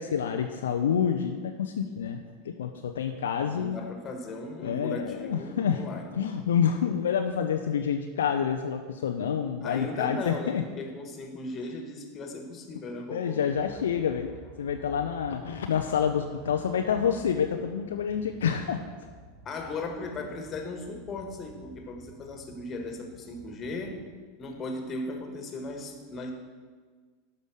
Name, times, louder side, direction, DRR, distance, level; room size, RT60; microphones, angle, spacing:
voice 1, 0.0-3.8 4.6-5.8 6.1-10.6 13.1-14.3 14.6-18.8, left 7 dB, 70° left, 5 dB, 0.6 m, -28 dB
voice 2, 3.5-6.1 9.6-13.5 19.5-24.0 24.4-26.3, left 2 dB, 30° left, 3 dB, 1.8 m, -37 dB
sound 1, 13.5-24.1, right 1 dB, 45° right, 3.3 m, -51 dB
11.5 x 5.3 x 6.4 m, 1.5 s
figure-of-eight pair, 85°, 0 cm